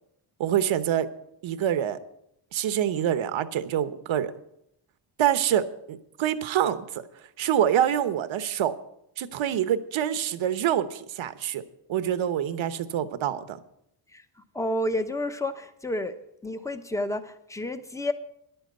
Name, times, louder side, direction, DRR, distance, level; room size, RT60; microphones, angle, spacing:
voice 1, 0.4-1.1 1.4-2.0 2.5-4.3 5.2-7.0 7.4-8.7 9.2-11.6 11.9-13.6, right 10 dB, 70° right, 12 dB, 1.1 m, -26 dB
voice 2, 14.5-16.2 16.4-18.1, left 1 dB, 5° left, 10 dB, 0.8 m, -30 dB
11.0 x 8.0 x 8.0 m, 0.79 s
cardioid pair, 115°, 49 cm